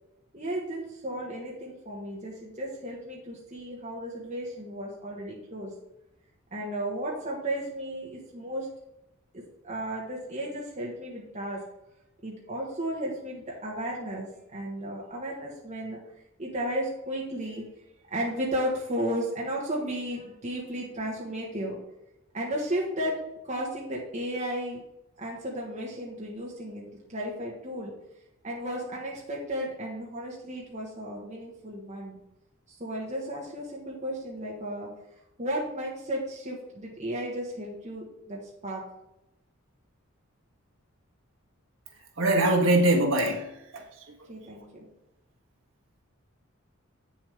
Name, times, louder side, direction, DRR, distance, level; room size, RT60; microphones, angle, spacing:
voice 1, 0.3-5.7 6.5-8.7 9.3-11.6 12.2-16.0 16.4-17.7 18.1-21.8 22.3-24.8 25.2-27.9 28.4-32.2 32.8-34.9 35.4-38.8 44.3-44.9, right 1 dB, 35° right, -3 dB, 1.6 m, -34 dB
voice 2, 42.2-43.8, right 1 dB, 65° right, 2 dB, 1.5 m, -23 dB
8.4 x 7.1 x 3.5 m, 0.87 s
head